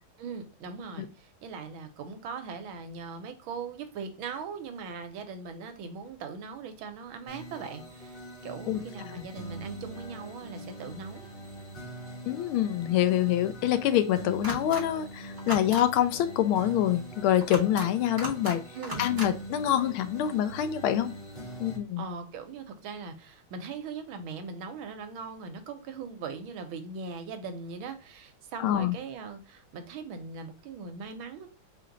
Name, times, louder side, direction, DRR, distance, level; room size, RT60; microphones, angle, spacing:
voice 1, 0.2-11.3 18.7-19.1 22.0-31.5, right 5 dB, 80° right, 7 dB, 1.5 m, -40 dB
sound 1, 7.3-21.8, right 1 dB, 35° left, 1.1 m, -43 dB
voice 2, 12.3-18.6 19.0-21.1 21.6-22.0 28.6-29.0, left 11 dB, 80° left, 10 dB, 1.4 m, -26 dB
sound 2, 14.4-14.8 15.4-15.8 17.4-17.9 18.2-18.6 18.8-19.3, equal, 20° right, 0.6 m, -36 dB
4.3 x 2.6 x 3.8 m, 0.36 s
omnidirectional pair, 2.3 m